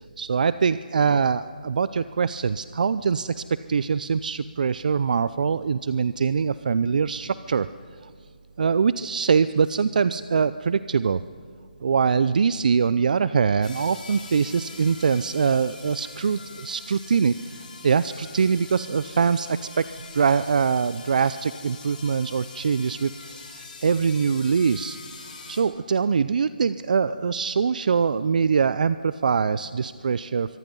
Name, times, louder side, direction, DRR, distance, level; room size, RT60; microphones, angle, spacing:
voice 1, 0.2-7.7 8.0-8.1 8.6-11.2 11.8-19.9 20.1-25.0 25.5-30.6, right 6 dB, 60° right, 15 dB, 0.6 m, -23 dB
sound 1, 13.6-25.6, left 4 dB, 60° left, 7.6 m, -43 dB
26.5 x 23.5 x 5.5 m, 2.2 s
figure-of-eight pair, 155°, 5 cm